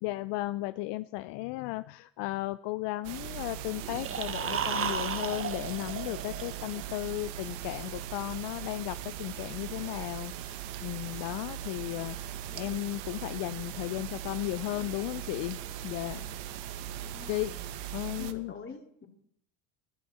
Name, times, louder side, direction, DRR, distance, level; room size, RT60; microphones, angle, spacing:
voice 1, 0.0-16.3 17.3-18.5, left 18 dB, 70° left, 14 dB, 0.6 m, -35 dB
sound 1, 3.0-18.3, right 10 dB, 70° right, 1.3 m, -40 dB
sound 2, 3.8-6.9, right 7 dB, 30° right, 1.1 m, -34 dB
voice 2, 12.5-12.9 17.0-17.5 18.1-19.1, left 5 dB, 25° left, 4 dB, 2.7 m, -47 dB
19.5 x 12.0 x 4.2 m, 0.69 s
supercardioid pair, 100°, 44 cm